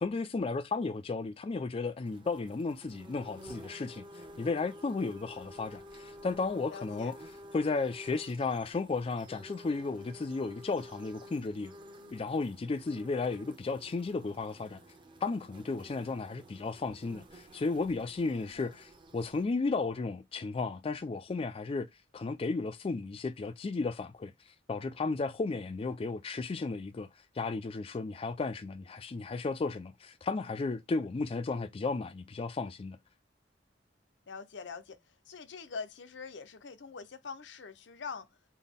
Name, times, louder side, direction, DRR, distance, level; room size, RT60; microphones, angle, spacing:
voice 1, 0.0-4.1 4.4-7.1 7.5-11.7 12.1-14.8 15.2-21.9 22.1-24.3 24.7-27.1 27.4-33.0, left 3 dB, 30° left, 0.3 m, -34 dB
sound 1, 2.0-19.5, equal, 25° right, 0.8 m, -51 dB
voice 2, 6.7-7.1 18.2-18.8 34.3-35.0 35.3-38.3, left 5 dB, 75° left, 0.6 m, -44 dB
4.0 x 2.2 x 3.5 m
head